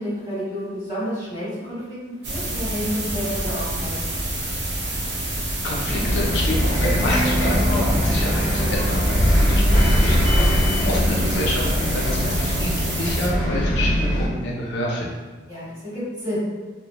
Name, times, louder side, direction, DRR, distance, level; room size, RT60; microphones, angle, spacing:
voice 1, 0.0-4.0 10.2-10.6 15.5-16.4, equal, 20° right, -12 dB, 1.3 m, -30 dB
sound 1, 2.2-13.3, right 1 dB, 60° right, 0.7 m, -28 dB
voice 2, 5.6-15.1, left 1 dB, 60° left, -2 dB, 0.4 m, -28 dB
Bus, 5.9-14.3, equal, 45° left, 0.8 m, -21 dB
2.8 x 2.0 x 2.2 m, 1.3 s
head